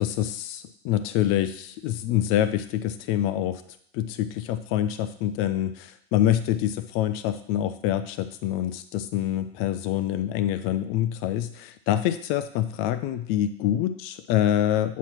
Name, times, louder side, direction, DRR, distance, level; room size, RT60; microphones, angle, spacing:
voice 1, 0.0-3.6 3.9-15.0, left 11 dB, 40° left, 11 dB, 0.5 m, -26 dB
8.2 x 3.0 x 5.8 m, 0.65 s
hypercardioid pair, 110°, 32 cm